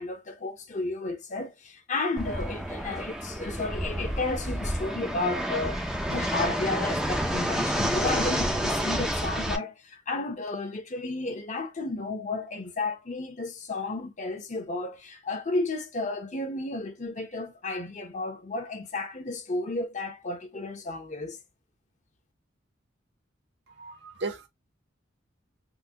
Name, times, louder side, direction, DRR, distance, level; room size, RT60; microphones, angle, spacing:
voice 1, 0.0-5.8 6.1-21.4, left 2 dB, 40° left, 0.8 m, -32 dB
Fixed-wing aircraft airplane, 2.2-9.6, equal, ahead, 0.4 m, -29 dB
voice 2, 23.8-24.5, right 3 dB, 60° right, 0.8 m, -35 dB
3.8 x 2.2 x 2.8 m
head